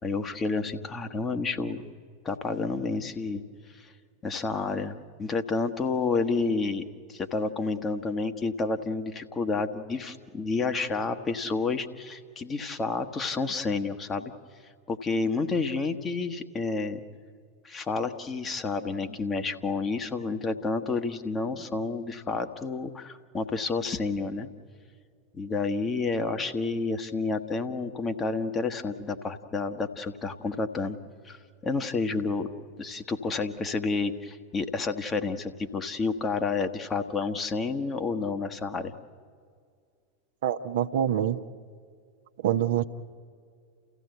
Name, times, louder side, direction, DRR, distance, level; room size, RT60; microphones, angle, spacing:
voice 1, 0.0-1.8 2.2-3.4 3.7-3.9 4.2-6.8 7.1-14.3 14.9-17.0 17.6-24.5 25.3-31.0 31.2-32.5 32.8-38.9, left 4 dB, 20° left, 7 dB, 1.4 m, -30 dB
voice 2, 40.4-41.4 42.4-42.8, right 10 dB, 60° right, 8 dB, 0.9 m, -25 dB
30.0 x 15.5 x 8.0 m, 2.1 s
figure-of-eight pair, 90°, 0 cm